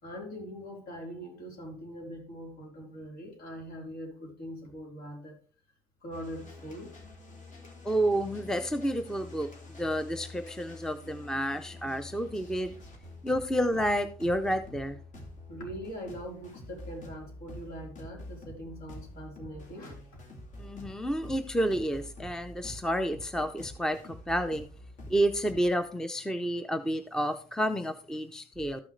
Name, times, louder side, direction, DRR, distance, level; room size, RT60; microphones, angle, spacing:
voice 1, 0.0-5.4 6.0-7.0 15.5-19.9, equal, 65° left, 4.1 m, -42 dB
sound 1, 6.1-25.6, left 1 dB, 45° left, 2.3 m, -47 dB
voice 2, 7.8-9.5 9.8-12.7 13.2-15.0 20.6-24.6 25.1-28.8, equal, 5° left, 0.6 m, -30 dB
13.5 x 6.1 x 3.2 m
cardioid pair, 110°, 17 cm